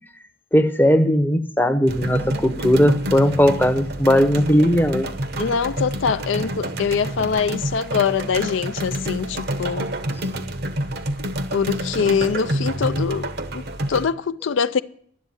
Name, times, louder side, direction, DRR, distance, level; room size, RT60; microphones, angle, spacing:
voice 1, 0.5-5.1, equal, 10° left, 0.7 m, -18 dB
sound 1, 1.9-14.1, right 1 dB, 50° right, 0.9 m, -28 dB
voice 2, 5.4-9.9 11.5-14.8, left 6 dB, 70° left, 0.4 m, -23 dB
12.0 x 8.0 x 9.5 m
head